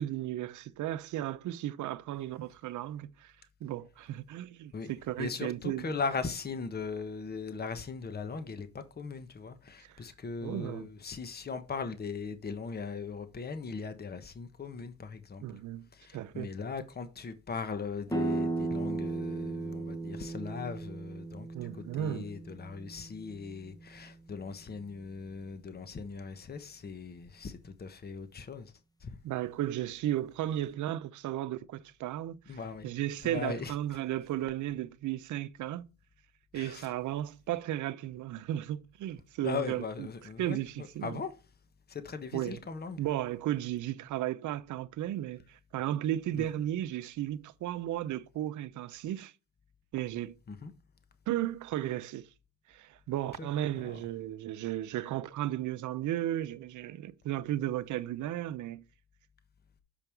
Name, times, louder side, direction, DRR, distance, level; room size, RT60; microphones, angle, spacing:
voice 1, 0.0-3.3 3.6-5.9 10.4-10.9 15.4-16.5 21.5-22.3 29.2-32.4 32.8-35.9 36.5-39.8 40.4-41.1 42.3-42.6 43.0-49.3 49.9-50.4 51.3-52.3 52.7-58.9, right 13 dB, 75° right, 0.7 m, -34 dB
voice 2, 4.7-15.4 15.9-28.7 29.0-29.1 32.4-32.9 33.2-34.0 36.5-36.9 39.4-41.3 41.9-43.0 46.3-46.4 50.5-50.7 53.4-53.5 53.8-54.0, left 5 dB, 30° left, 1.2 m, -39 dB
sound 1, 18.1-23.7, right 2 dB, 10° left, 1.2 m, -36 dB
7.0 x 5.3 x 4.6 m
cardioid pair, 90°, 30 cm